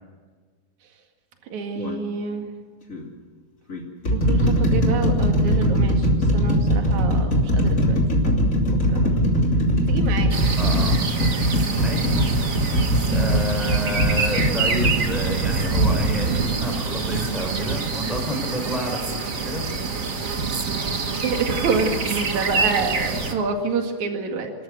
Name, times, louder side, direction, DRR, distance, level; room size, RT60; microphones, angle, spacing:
voice 1, 1.5-2.5 4.1-8.0 8.2-9.1 9.9-10.3 20.8-20.9 21.2-24.5, right 4 dB, 65° right, 4 dB, 3.4 m, -28 dB
sound 1, 1.8-2.0 2.9-3.0 3.7-15.0 15.8-15.9, equal, 25° left, 2.9 m, -20 dB
sound 2, 10.3-23.3, right 4 dB, 40° right, 1.2 m, -25 dB
voice 2, 10.6-11.0 11.8-12.3 13.1-19.7, equal, ahead, 2 dB, 4.6 m, -30 dB
28.0 x 13.5 x 8.0 m, 1.5 s
omnidirectional pair, 3.6 m